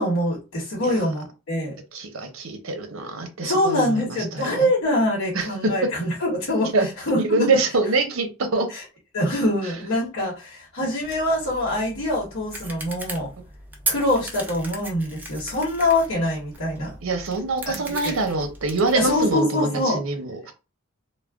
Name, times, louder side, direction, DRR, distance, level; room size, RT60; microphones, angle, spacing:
voice 1, 0.0-1.8 3.4-6.7 7.1-7.2 8.7-8.8 9.1-13.3 13.9-16.9 17.7-17.8 18.0-18.1 18.9-20.0, left 1 dB, 75° left, 1.1 m, -24 dB
voice 2, 1.9-4.7 5.3-5.7 6.7-6.9 7.2-8.7 17.0-20.5, right 3 dB, 75° right, 0.7 m, -25 dB
sound 1, 11.0-19.3, right 2 dB, 10° right, 0.5 m, -37 dB
2.3 x 2.1 x 3.4 m
head